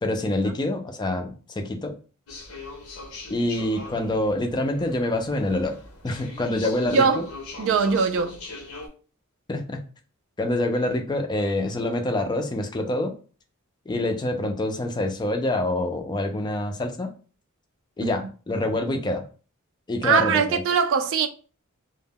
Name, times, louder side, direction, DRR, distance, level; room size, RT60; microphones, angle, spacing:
voice 1, 0.0-1.9 3.3-5.8 6.0-7.2 9.5-9.8 10.4-13.1 13.9-17.1 18.0-19.2 19.9-20.6, left 1 dB, 20° left, 0.3 m, -26 dB
sound 1, 2.3-8.9, left 2 dB, 80° left, 0.6 m, -41 dB
voice 2, 6.8-7.2 7.6-8.4 20.0-21.3, right 6 dB, 60° right, 0.3 m, -21 dB
2.1 x 2.1 x 3.4 m
head